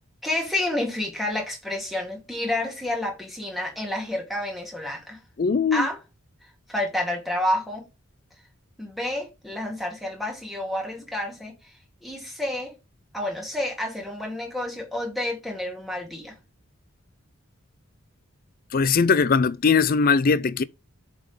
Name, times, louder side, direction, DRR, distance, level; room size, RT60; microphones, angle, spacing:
voice 1, 0.2-5.2 5.7-6.0 6.7-7.9 8.8-11.6 12.0-12.7 13.1-16.4, left 1 dB, ahead, 2.4 m, -29 dB
voice 2, 5.4-5.9 18.7-20.6, left 5 dB, 40° left, 0.4 m, -20 dB
7.2 x 3.7 x 5.0 m
head